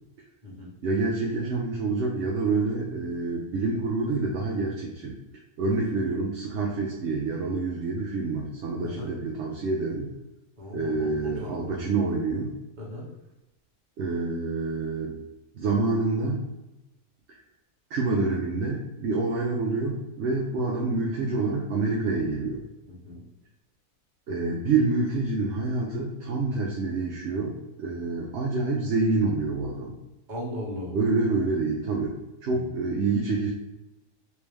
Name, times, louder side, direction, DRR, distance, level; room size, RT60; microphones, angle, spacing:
voice 1, 0.8-5.2 5.6-10.1 10.7-12.6 14.0-15.1 15.5-16.4 17.9-22.6 24.3-30.0 30.9-33.5, right 3 dB, 60° right, -1 dB, 0.8 m, -27 dB
voice 2, 10.6-11.9 12.8-13.1 22.9-23.2 30.3-31.0 32.4-32.7, left 1 dB, 35° right, -6 dB, 1.4 m, -37 dB
3.4 x 3.1 x 3.3 m, 0.98 s
omnidirectional pair, 1.5 m